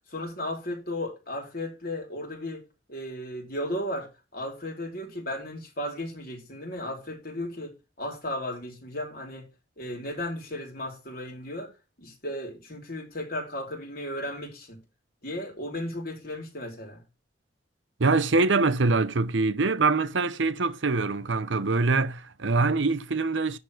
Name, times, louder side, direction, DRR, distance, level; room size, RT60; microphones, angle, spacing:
voice 1, 0.1-2.6 2.9-9.5 9.8-11.7 12.0-14.8 15.2-17.0, left 1 dB, 50° left, 3.9 m, -35 dB
voice 2, 18.0-23.6, right 3 dB, 75° right, 0.9 m, -24 dB
10.5 x 3.7 x 6.5 m
head